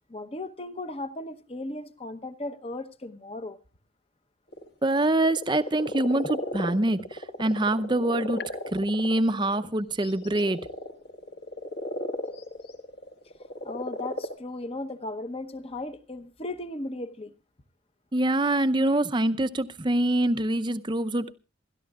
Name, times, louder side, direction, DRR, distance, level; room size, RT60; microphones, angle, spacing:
voice 1, 0.1-3.6 13.6-17.3, left 2 dB, 30° left, 0.9 m, -36 dB
sound 1, 4.5-4.7 5.1-9.7 10.0-14.4, left 1 dB, 55° left, 1.6 m, -35 dB
voice 2, 4.8-10.6 18.1-21.3, right 1 dB, 25° right, 0.6 m, -25 dB
27.5 x 13.0 x 2.4 m
head